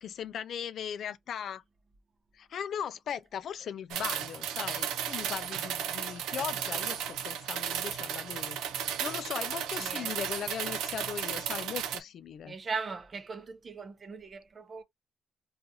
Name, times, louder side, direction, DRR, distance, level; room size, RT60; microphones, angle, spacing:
voice 1, 0.0-1.6 2.3-8.6 9.0-12.6, left 8 dB, 65° left, 0.3 m, -38 dB
sound 1, 3.9-12.0, right 9 dB, 90° right, 0.5 m, -34 dB
voice 2, 9.8-10.2 12.4-14.8, right 4 dB, 35° right, 0.6 m, -39 dB
3.8 x 2.4 x 2.7 m
cardioid pair, 90°, 0 cm